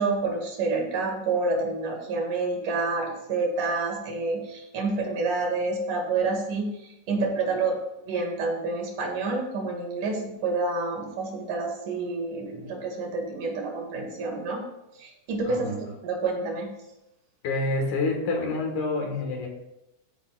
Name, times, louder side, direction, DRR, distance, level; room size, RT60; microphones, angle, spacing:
voice 1, 0.0-14.6 15.0-15.8 16.0-16.7, right 3 dB, 80° right, 1 dB, 3.4 m, -28 dB
voice 2, 15.5-15.8 17.4-19.5, left 2 dB, 80° left, 2 dB, 3.1 m, -27 dB
13.0 x 9.7 x 2.4 m, 0.90 s
omnidirectional pair, 3.5 m